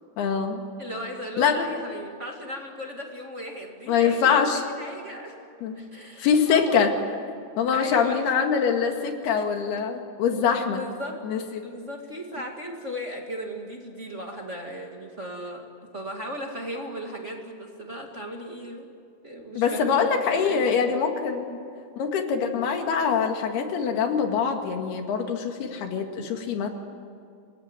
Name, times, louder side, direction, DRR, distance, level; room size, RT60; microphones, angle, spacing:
voice 1, 0.2-0.6 1.4-1.7 3.9-4.6 5.6-5.9 6.2-6.9 7.6-10.8 11.2-11.7 19.6-21.5 22.0-26.7, left 6 dB, 85° left, 4 dB, 4.0 m, -24 dB
voice 2, 0.8-5.4 5.7-6.9 7.7-8.3 10.7-11.2 11.6-15.7 15.9-18.9 19.2-21.0 21.5-21.7 22.3-22.6, equal, 25° right, 1 dB, 1.6 m, -37 dB
26.0 x 19.5 x 9.7 m, 2.4 s
omnidirectional pair, 4.5 m